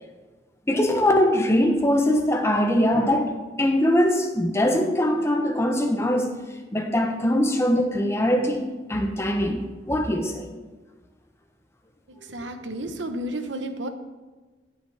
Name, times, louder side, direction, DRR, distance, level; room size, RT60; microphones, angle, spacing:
voice 1, 0.7-3.3 3.6-6.4 6.7-10.5, left 1 dB, 15° left, 4 dB, 1.0 m, -22 dB
voice 2, 12.2-13.9, right 1 dB, 80° right, 8 dB, 1.0 m, -32 dB
16.5 x 8.4 x 3.5 m, 1.3 s
head